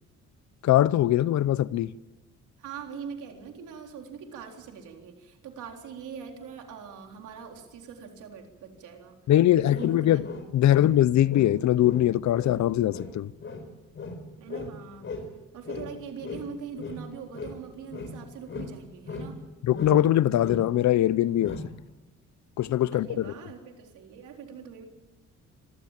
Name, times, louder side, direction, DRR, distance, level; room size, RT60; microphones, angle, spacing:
voice 1, 0.6-1.9 9.3-10.2 10.5-13.3 19.6-21.6 22.6-23.3, left 12 dB, 65° left, 0.8 m, -22 dB
voice 2, 2.6-9.2 9.7-10.2 10.7-11.0 14.4-15.1 15.5-19.4 22.9-24.8, right 6 dB, 80° right, 3.9 m, -42 dB
sound 1, 9.7-11.0 11.3-15.3 15.7-17.6 17.9-19.4 19.7-20.1 20.4-20.7 21.4-21.8, left 3 dB, 40° left, 4.3 m, -38 dB
25.5 x 16.0 x 7.5 m
cardioid pair, 90°, 30 cm